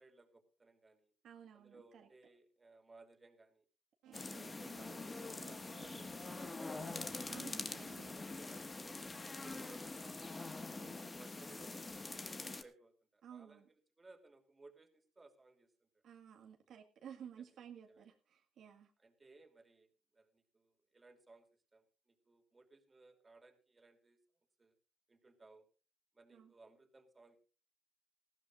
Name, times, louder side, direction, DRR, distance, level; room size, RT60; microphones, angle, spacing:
voice 1, 0.0-1.1 1.5-3.6 4.2-7.7 8.0-9.0 9.4-10.4 11.0-13.6 14.0-15.9 17.4-17.5 17.9-18.1 19.0-19.9 20.1-24.2 24.6-24.7 25.1-25.7 26.1-27.4, right 3 dB, 20° right, 5 dB, 3.0 m, -62 dB
voice 2, 1.2-2.1 4.1-4.5 7.3-7.9 10.8-11.1 13.2-13.7 16.0-18.9 26.3-26.5, right 8 dB, 60° right, 4 dB, 1.7 m, -55 dB
sound 1, 4.0-9.2, right 11 dB, 80° right, 1.7 m, -63 dB
sound 2, 4.1-12.6, left 3 dB, 20° left, 1.7 m, -45 dB
19.5 x 15.5 x 2.5 m, 0.35 s
cardioid pair, 110°, 0 cm